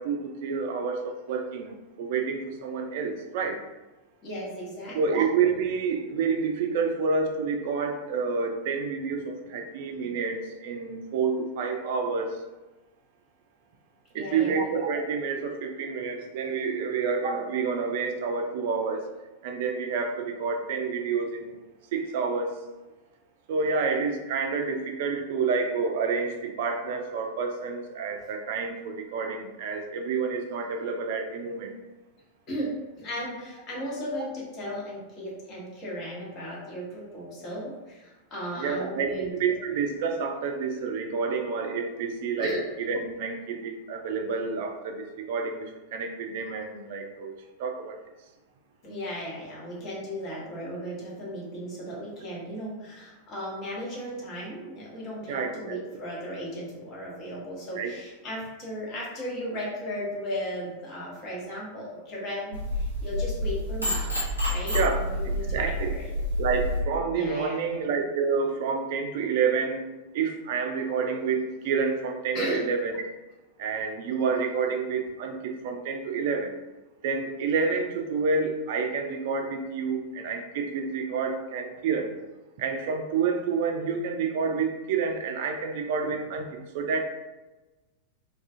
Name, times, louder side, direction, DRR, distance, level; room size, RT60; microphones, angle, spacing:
voice 1, 0.0-1.7 2.0-3.6 4.9-12.4 14.1-19.1 19.4-21.6 21.9-22.6 23.5-31.7 38.6-42.5 42.9-47.3 47.6-48.0 55.3-55.8 57.8-57.9 64.7-65.9 66.4-69.8 70.1-73.0 73.6-76.5 77.0-82.1 82.6-87.0, right 5 dB, 50° right, 4 dB, 0.4 m, -29 dB
voice 2, 4.2-5.2 14.1-14.7 32.5-39.6 42.4-42.6 48.8-64.0 64.5-66.1 67.1-67.6 72.3-72.6, equal, 35° left, -4 dB, 1.0 m, -36 dB
sound 1, 62.5-66.8, left 1 dB, 85° left, 0.8 m, -29 dB
2.4 x 2.3 x 2.5 m, 1.1 s
figure-of-eight pair, 90°, 0 cm